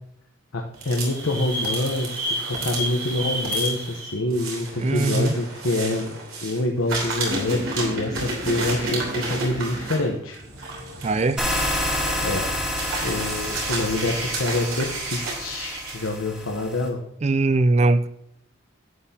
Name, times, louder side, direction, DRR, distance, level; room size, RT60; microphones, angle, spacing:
voice 1, 0.5-6.1 6.4-10.4 12.2-12.5 13.0-17.0, left 2 dB, 85° left, 0.9 m, -26 dB
sound 1, 0.7-6.6 6.9-16.1, right 2 dB, 85° right, 3.1 m, -31 dB
voice 2, 4.8-5.4 11.0-11.4 17.2-18.1, right 2 dB, 30° right, 0.3 m, -20 dB
sound 2, 11.4-16.9, left 1 dB, 5° right, 1.6 m, -29 dB
11.0 x 8.8 x 2.8 m
head